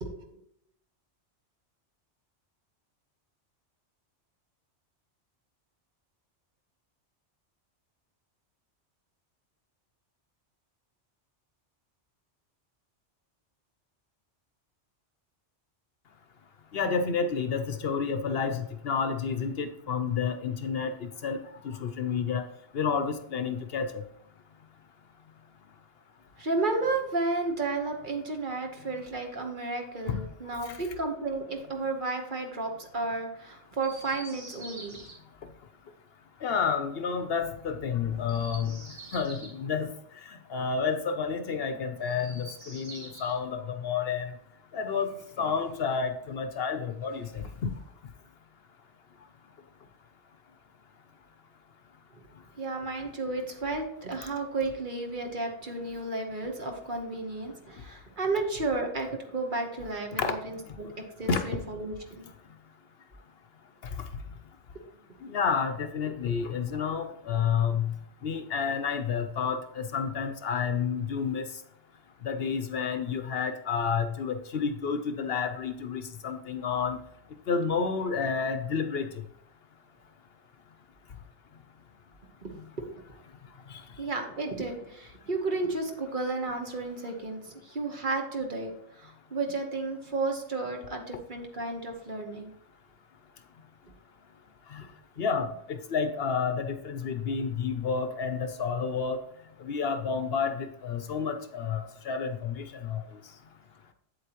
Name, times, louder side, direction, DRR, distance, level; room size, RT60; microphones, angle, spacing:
voice 1, 0.0-0.4 26.4-35.0 52.6-62.3 82.4-82.5 82.8-82.9 84.0-88.7 89.0-92.5, right 3 dB, 45° right, 3 dB, 1.3 m, -32 dB
voice 2, 16.7-20.9 21.2-22.4 22.7-23.9 30.1-30.2 30.7-30.8 36.4-38.8 39.1-39.9 40.5-44.3 44.7-45.1 45.4-47.7 60.2-60.3 61.3-61.5 65.2-67.9 68.2-71.4 72.2-77.0 77.5-79.1 94.7-94.8 95.2-99.2 99.6-103.0, left 6 dB, 60° left, 8 dB, 0.8 m, -30 dB
Chirp tweet, 33.8-35.2 38.2-39.6 42.0-43.4 44.8-45.9 47.0-47.9, right 2 dB, 80° right, 2.2 m, -47 dB
8.1 x 8.1 x 3.0 m, 0.72 s
omnidirectional pair, 1.2 m